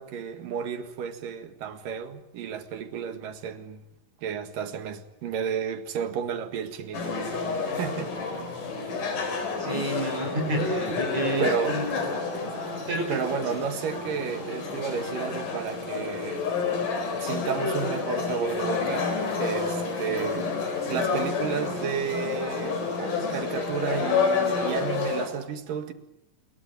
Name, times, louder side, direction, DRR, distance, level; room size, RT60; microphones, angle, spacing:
voice 1, 0.0-3.8 4.2-7.2 7.6-8.1 11.4-11.8 13.1-16.8 17.2-19.1 19.4-20.5 20.9-25.9, right 7 dB, 75° right, 3.4 m, -32 dB
sound 1, 6.9-25.3, left 4 dB, 70° left, 5.9 m, -29 dB
voice 2, 9.6-12.1 12.9-13.2, right 2 dB, 50° right, 6.7 m, -30 dB
27.5 x 21.5 x 9.3 m
omnidirectional pair, 3.9 m